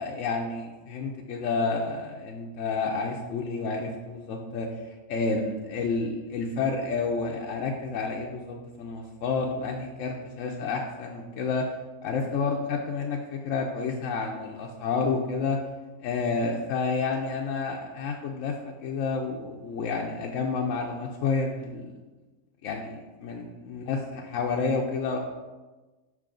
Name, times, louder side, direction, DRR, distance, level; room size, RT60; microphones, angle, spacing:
voice 1, 0.0-11.6 12.0-15.6 16.0-18.5 18.8-22.0 22.6-25.2, left 4 dB, 70° left, 0 dB, 0.9 m, -30 dB
6.0 x 4.7 x 3.8 m, 1.2 s
omnidirectional pair, 1.6 m